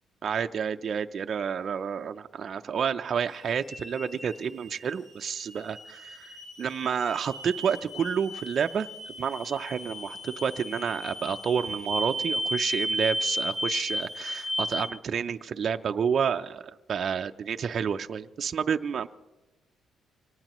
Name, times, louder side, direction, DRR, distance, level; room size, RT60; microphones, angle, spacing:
voice 1, 0.2-6.3 6.6-16.6 16.9-19.1, right 7 dB, 55° right, 7 dB, 0.5 m, -30 dB
sound 1, 3.2-14.9, equal, 55° left, 7.0 m, -35 dB
24.5 x 18.5 x 3.0 m, 1.1 s
cardioid pair, 90°, 0 cm